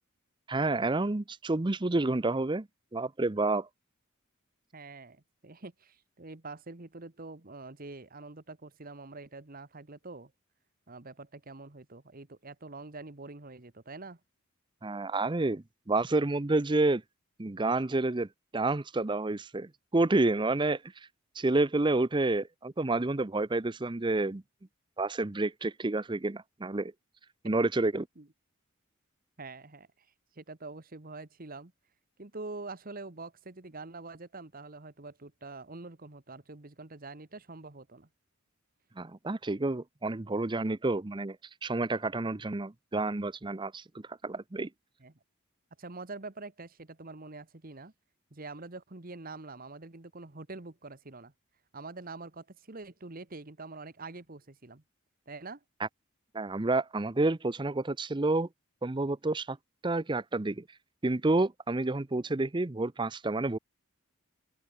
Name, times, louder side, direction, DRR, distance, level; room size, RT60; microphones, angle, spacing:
voice 1, 0.5-2.7 2.9-3.7 14.8-17.0 17.4-21.1 21.3-24.4 25.0-26.9 27.4-28.1 39.0-41.4 41.6-44.7 56.3-58.5 58.8-59.6 59.8-60.6 61.0-63.6, right 2 dB, 20° right, 0.6 m, -29 dB
voice 2, 4.7-10.3 10.9-14.2 28.2-28.3 29.4-31.7 32.2-38.1 45.0-45.2 45.8-47.9 48.3-51.3 51.7-54.8 55.3-55.6, right 3 dB, 40° right, 1.4 m, -45 dB
open air
head